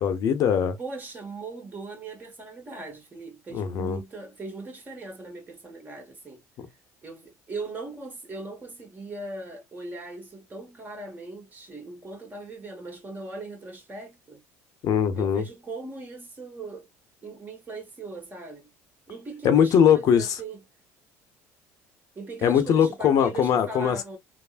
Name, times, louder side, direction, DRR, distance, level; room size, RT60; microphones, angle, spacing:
voice 1, 0.0-0.8 3.5-4.0 6.6-6.7 14.8-15.4 19.4-20.3 22.4-24.0, left 8 dB, 55° left, 0.7 m, -21 dB
voice 2, 0.8-6.4 7.0-14.4 15.1-16.9 17.2-18.7 19.1-20.6 22.1-24.2, right 3 dB, 25° right, 1.5 m, -39 dB
3.3 x 2.1 x 2.4 m
supercardioid pair, 90°, 7 cm